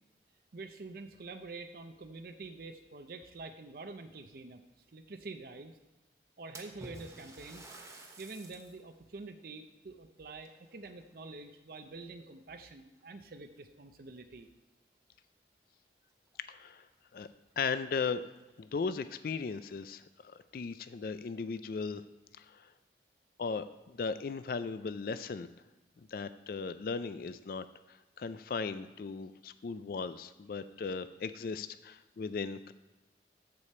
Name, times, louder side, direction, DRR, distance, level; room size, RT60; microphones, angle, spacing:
voice 1, 0.5-4.6 4.9-5.7 6.4-7.7 8.2-14.5, right 3 dB, 55° right, 7 dB, 0.5 m, -47 dB
Splash splatter, 6.5-8.8 9.3-9.4 10.4-11.4 11.7-12.2 13.0-13.1 13.6-13.7 15.9-16.0 16.3-16.4 16.9-17.0 17.4-17.5 18.3-18.8, right 2 dB, 15° right, 1.0 m, -51 dB
voice 2, 16.5-16.8 17.1-17.3 17.6-18.2 18.6-22.0 22.4-22.7 23.4-25.5 26.1-32.7, left 5 dB, 55° left, 13 dB, 0.4 m, -37 dB
14.0 x 4.9 x 4.3 m, 1.1 s
head